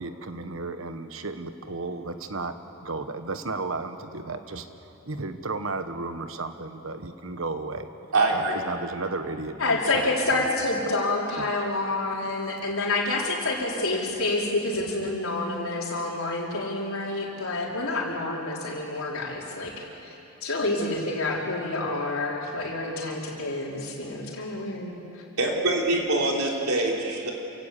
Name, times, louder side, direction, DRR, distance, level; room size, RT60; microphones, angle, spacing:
voice 1, 0.0-2.5 2.8-7.9 8.3-10.5 10.8-10.9 11.4-11.5 14.8-15.2, right 3 dB, 70° right, 9 dB, 1.3 m, -34 dB
voice 2, 8.1-8.6 25.4-27.3, right 2 dB, 90° right, 0 dB, 3.8 m, -24 dB
voice 3, 9.6-19.7 20.0-20.2 20.4-24.9, left 2 dB, 75° left, -2 dB, 4.2 m, -28 dB
28.0 x 16.5 x 8.4 m, 3.0 s
head